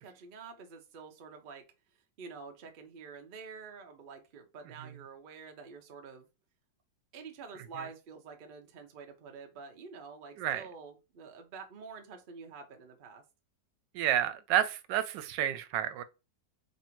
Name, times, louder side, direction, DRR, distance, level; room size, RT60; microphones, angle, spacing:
voice 1, 0.0-1.6 2.2-6.3 7.1-13.2, right 5 dB, 55° right, 0.6 m, -48 dB
voice 2, 13.9-16.0, right 11 dB, 90° right, 1.3 m, -30 dB
3.2 x 2.7 x 4.4 m
omnidirectional pair, 1.9 m